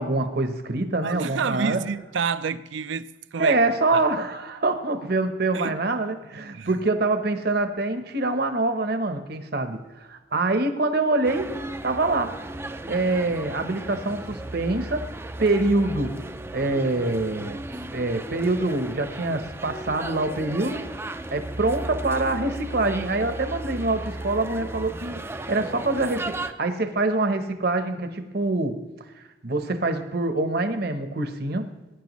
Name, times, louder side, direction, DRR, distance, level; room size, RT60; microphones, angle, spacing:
voice 1, 0.0-1.8 3.4-11.5 11.8-12.3 12.9-15.1 15.4-16.2 16.5-17.6 17.9-25.2 25.5-28.8 29.4-31.7, right 2 dB, 50° right, 0.9 m, -25 dB
voice 2, 1.0-3.6 3.9-4.0 5.5-5.8 6.5-6.7, right 6 dB, 65° right, 0.5 m, -29 dB
sound 1, 11.2-26.5, right 2 dB, 10° right, 0.4 m, -35 dB
19.5 x 10.0 x 3.1 m
head